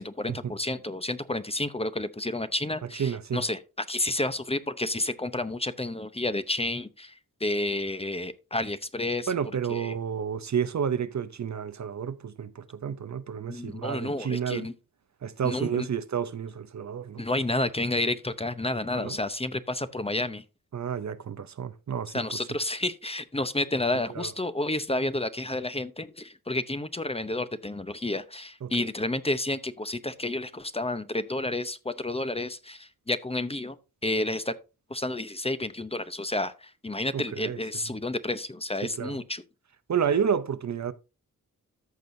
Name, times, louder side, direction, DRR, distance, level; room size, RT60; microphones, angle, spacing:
voice 1, 0.0-9.3 9.7-10.0 13.5-14.7 15.4-15.9 17.2-20.4 22.0-33.8 34.0-34.5 34.9-39.4, left 2 dB, 15° left, 0.8 m, -30 dB
voice 2, 3.0-3.4 9.3-14.7 15.2-17.2 18.9-19.2 20.7-22.1 24.2-24.3 28.6-28.7 37.1-37.6 39.0-39.2 39.9-40.9, right 7 dB, 50° right, 0.7 m, -30 dB
14.0 x 6.2 x 2.7 m
cardioid pair, 75°, 35 cm